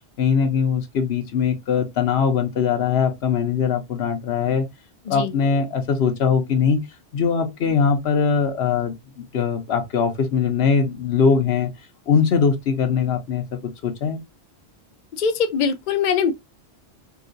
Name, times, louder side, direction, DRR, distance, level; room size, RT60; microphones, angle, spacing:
voice 1, 0.2-4.6 5.1-6.8 7.1-11.7 12.1-14.2, left 6 dB, 75° left, 1.0 m, -21 dB
voice 2, 15.2-16.3, left 6 dB, 55° left, 0.6 m, -22 dB
3.8 x 2.4 x 2.5 m
omnidirectional pair, 1.1 m